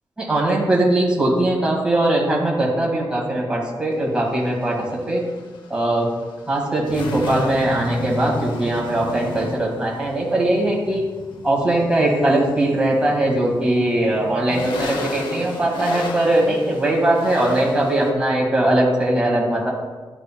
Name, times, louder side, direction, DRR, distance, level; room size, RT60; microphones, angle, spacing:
voice 1, 0.2-5.2 5.7-6.1 6.5-11.0 11.4-19.7, right 1 dB, 10° right, -4 dB, 1.7 m, -20 dB
sound 1, 3.9-18.1, left 2 dB, 85° left, 0.8 m, -33 dB
11.5 x 4.9 x 2.2 m, 1.3 s
wide cardioid pair, 165°, 8 cm